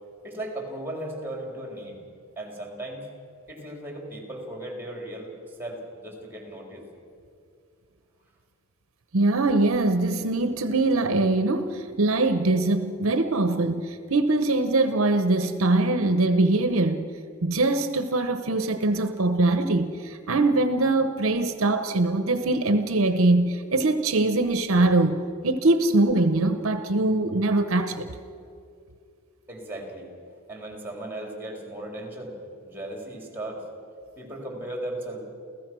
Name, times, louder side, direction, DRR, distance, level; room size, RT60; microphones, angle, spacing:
voice 1, 0.2-2.0 2.4-3.0 3.5-6.8 29.5-30.1 30.5-32.3 32.6-33.6 34.2-35.3, right 1 dB, 10° right, 1 dB, 3.7 m, -36 dB
voice 2, 9.1-17.1 17.4-28.1, right 2 dB, 65° right, 9 dB, 0.9 m, -22 dB
29.0 x 15.5 x 6.2 m, 2.4 s
head